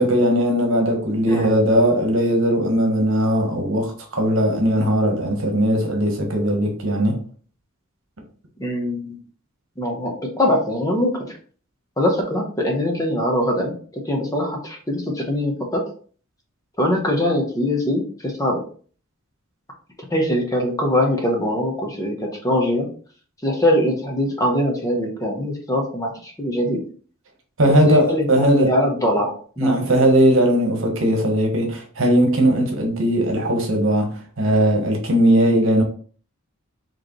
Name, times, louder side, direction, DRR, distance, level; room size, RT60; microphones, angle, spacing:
voice 1, 0.0-7.2 27.6-28.7 29.6-35.8, right 1 dB, 65° right, 1.1 m, -19 dB
voice 2, 8.6-9.1 9.8-11.4 12.0-15.8 16.8-18.6 20.1-22.9 23.4-26.8 27.7-29.8, left 1 dB, 15° left, 0.9 m, -22 dB
4.7 x 3.1 x 3.1 m
head